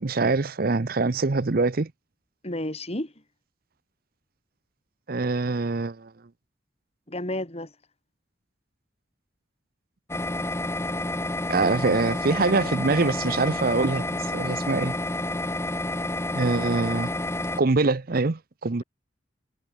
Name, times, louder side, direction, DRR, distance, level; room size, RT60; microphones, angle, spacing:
voice 1, 0.0-1.9 5.1-6.1 11.5-14.9 16.3-17.1 17.6-18.8, right 3 dB, 55° right, 0.7 m, -24 dB
voice 2, 2.4-3.1 7.1-7.7 11.6-11.7, left 1 dB, 35° left, 4.3 m, -31 dB
sound 1, 10.1-17.6, left 1 dB, 15° left, 1.9 m, -29 dB
head